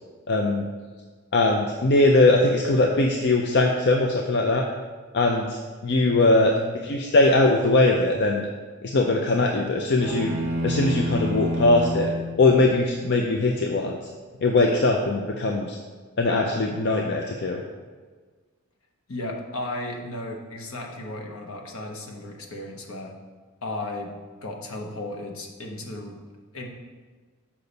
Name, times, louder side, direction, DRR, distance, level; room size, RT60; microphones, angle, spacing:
voice 1, 0.3-0.7 1.3-4.7 5.1-6.5 6.8-8.5 8.9-10.3 10.6-14.0 14.4-15.8 16.2-17.6, left 2 dB, 50° left, 1 dB, 0.5 m, -21 dB
voice 2, 6.0-6.7 19.1-23.1 23.6-24.1 24.4-26.2 26.5-26.7, left 1 dB, 70° left, 1 dB, 1.0 m, -35 dB
sound 1, 10.0-12.3, equal, 30° right, 1.0 m, -27 dB
6.8 x 5.7 x 4.0 m, 1.4 s
head